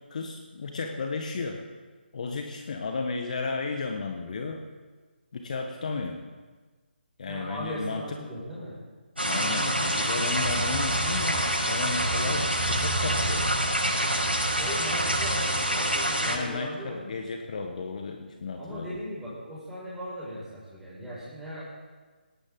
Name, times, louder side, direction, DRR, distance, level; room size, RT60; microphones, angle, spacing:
voice 1, 0.1-1.6 2.1-4.6 5.3-6.2 7.2-8.2 9.2-13.5 16.3-19.0, left 4 dB, 45° left, 3 dB, 1.5 m, -33 dB
voice 2, 7.3-8.7 14.6-17.0 18.6-21.6, equal, 5° right, -9 dB, 6.0 m, -38 dB
sound 1, 9.2-16.4, right 1 dB, 80° right, 6.1 m, -26 dB
18.5 x 18.5 x 3.9 m, 1.4 s
figure-of-eight pair, 145°, 6 cm